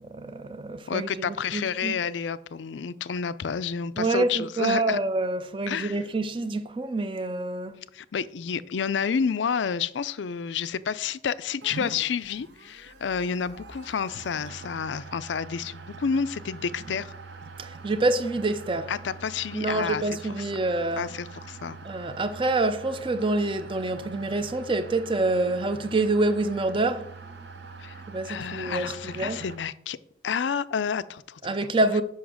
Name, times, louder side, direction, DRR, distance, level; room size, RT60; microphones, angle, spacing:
voice 1, 0.1-1.9 4.0-7.8 17.6-18.9 19.5-21.1 21.8-27.1 28.1-29.4 31.4-32.0, right 2 dB, 30° right, 0.5 m, -27 dB
voice 2, 0.9-5.0 5.7-6.0 7.9-17.1 18.9-20.5 21.0-21.8 27.8-28.0 28.2-30.0 30.2-31.6, left 6 dB, 90° left, 0.5 m, -30 dB
sound 1, 11.6-29.6, right 4 dB, 75° right, 0.9 m, -43 dB
7.2 x 5.8 x 6.2 m
head